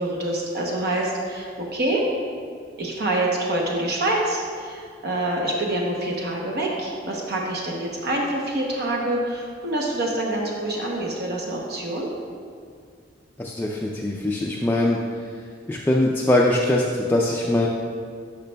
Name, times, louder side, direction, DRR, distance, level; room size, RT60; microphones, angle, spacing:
voice 1, 0.0-2.0 2.8-12.1, right 1 dB, 60° right, -2 dB, 0.8 m, -26 dB
voice 2, 13.4-15.0 15.7-17.7, left 1 dB, 10° left, -2 dB, 0.3 m, -22 dB
10.5 x 5.2 x 2.2 m, 2.1 s
head